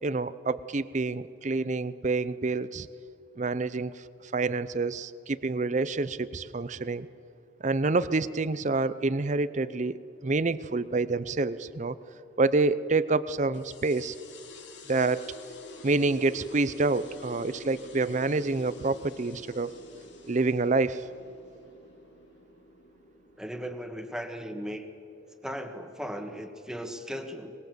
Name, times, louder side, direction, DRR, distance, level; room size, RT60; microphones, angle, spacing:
voice 1, 0.0-2.9 3.4-4.0 4.3-7.1 7.6-12.0 12.4-14.2 14.9-15.3 15.8-19.7 20.3-21.1, right 3 dB, 40° right, 15 dB, 0.6 m, -27 dB
sound 1, 13.5-24.6, left 1 dB, 75° left, 2.8 m, -48 dB
voice 2, 23.4-24.8 25.4-27.5, equal, 5° right, 6 dB, 1.6 m, -37 dB
23.5 x 21.0 x 7.9 m, 2.5 s
head